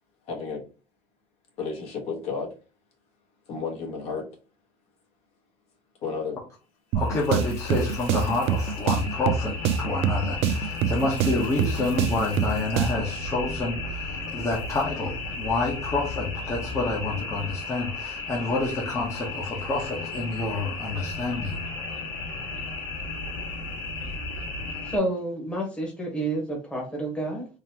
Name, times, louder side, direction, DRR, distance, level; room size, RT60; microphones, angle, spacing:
voice 1, 0.3-0.6 1.6-2.5 3.5-4.3 6.0-6.4, left 4 dB, 55° left, 1.4 m, -32 dB
voice 2, 6.9-21.6, left 2 dB, 25° left, 1.0 m, -28 dB
sound 1, 6.9-13.1, right 7 dB, 60° right, 0.4 m, -27 dB
sound 2, 7.0-25.0, left 3 dB, 80° left, 1.9 m, -35 dB
voice 3, 24.8-27.5, right 1 dB, 10° left, 1.2 m, -29 dB
3.9 x 2.9 x 2.9 m
cardioid pair, 150°, 12 cm